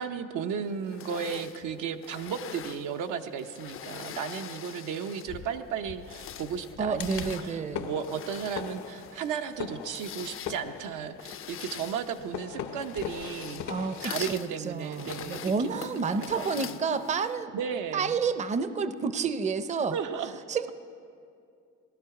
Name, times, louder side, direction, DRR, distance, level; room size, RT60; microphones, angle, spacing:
voice 1, 0.0-13.6 14.0-16.7 17.5-18.2 19.9-20.4, right 7 dB, 85° right, 6 dB, 0.7 m, -35 dB
sound 1, 0.9-5.5 5.9-17.4, left 9 dB, 45° left, 0.4 m, -43 dB
sound 2, 5.3-14.1, left 8 dB, 70° left, 0.7 m, -41 dB
voice 2, 6.8-7.9 13.6-17.5 17.9-20.0 20.5-20.7, right 5 dB, 25° right, 12 dB, 0.5 m, -30 dB
18.0 x 11.5 x 4.7 m, 2.4 s
cardioid pair, 90°, 30 cm